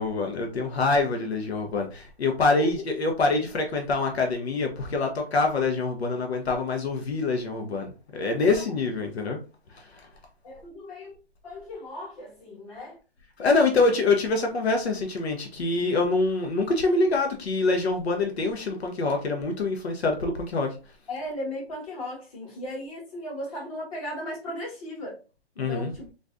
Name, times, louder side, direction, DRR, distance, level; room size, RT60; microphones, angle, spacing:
voice 1, 0.0-9.4 9.7-10.1 13.4-20.8 25.6-25.9, left 3 dB, 85° left, 0.8 m, -25 dB
voice 2, 2.4-3.0 8.5-8.6 10.4-11.2 11.4-13.0 21.1-25.2 25.6-26.1, left 1 dB, 35° left, 1.4 m, -37 dB
3.8 x 2.5 x 2.4 m
hypercardioid pair, 160°, 31 cm